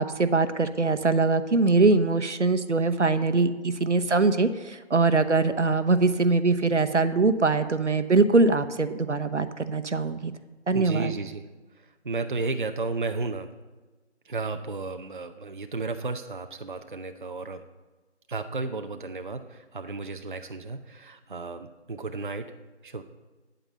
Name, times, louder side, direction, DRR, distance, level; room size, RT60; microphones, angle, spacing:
voice 1, 0.0-10.3 10.7-11.1, right 3 dB, 75° right, 10 dB, 1.1 m, -22 dB
voice 2, 10.7-11.5 11.7-13.5 14.2-17.6 18.3-22.5 22.8-23.0, right 3 dB, 45° right, 7 dB, 0.7 m, -33 dB
9.1 x 9.0 x 7.9 m, 1.2 s
figure-of-eight pair, 165°, 36 cm